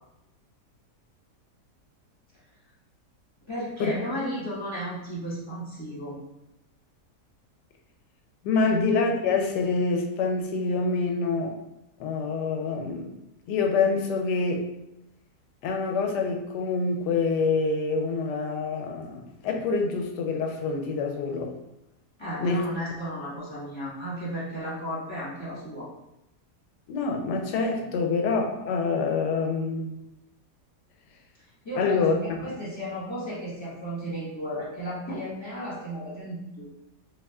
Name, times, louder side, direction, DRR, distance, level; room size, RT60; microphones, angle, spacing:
voice 1, 3.5-6.2 8.6-8.8 22.2-25.9 31.6-36.7, equal, 15° left, -9 dB, 1.5 m, -34 dB
voice 2, 8.4-11.6 12.0-13.1 13.5-14.7 15.6-21.5 22.4-22.7 26.9-30.0 31.8-32.5, left 4 dB, 85° left, 3 dB, 1.2 m, -26 dB
4.8 x 2.8 x 2.3 m, 0.87 s
omnidirectional pair, 1.7 m